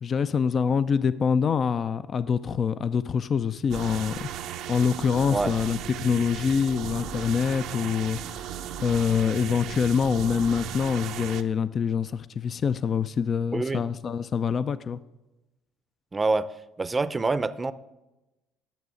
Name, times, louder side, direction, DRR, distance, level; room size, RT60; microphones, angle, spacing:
voice 1, 0.0-4.3 4.7-15.0, left 6 dB, 45° left, 0.4 m, -25 dB
human voice is so lovely, 3.7-11.4, right 10 dB, 65° right, 0.6 m, -36 dB
voice 2, 13.5-13.8 16.1-16.5 16.8-17.7, right 3 dB, 25° right, 0.6 m, -26 dB
10.5 x 6.9 x 6.3 m
hypercardioid pair, 70°, 0 cm